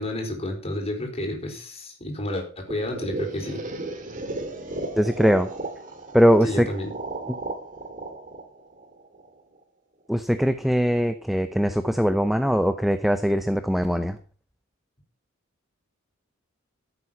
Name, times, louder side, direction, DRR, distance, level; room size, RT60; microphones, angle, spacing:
voice 1, 0.0-3.6 6.4-6.9, left 1 dB, 30° left, 1 dB, 4.6 m, -30 dB
sound 1, 2.7-9.6, right 2 dB, 40° right, 2.3 m, -35 dB
voice 2, 5.0-5.5 6.1-6.7 10.1-14.2, equal, ahead, 9 dB, 0.7 m, -21 dB
15.0 x 8.2 x 5.8 m, 0.40 s
head